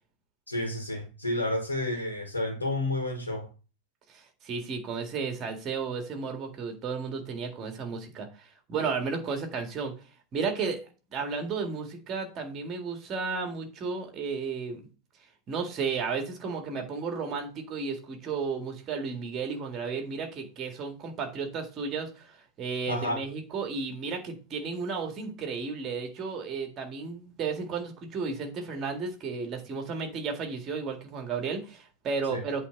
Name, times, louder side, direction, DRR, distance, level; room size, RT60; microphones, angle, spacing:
voice 1, 0.5-3.5 22.8-23.2 32.3-32.4, left 1 dB, 80° left, 1.9 m, -30 dB
voice 2, 4.1-9.9 10.3-10.8 11.1-14.8 15.5-32.7, right 5 dB, 30° right, 1.9 m, -33 dB
8.2 x 3.7 x 5.6 m
figure-of-eight pair, 90°, 0 cm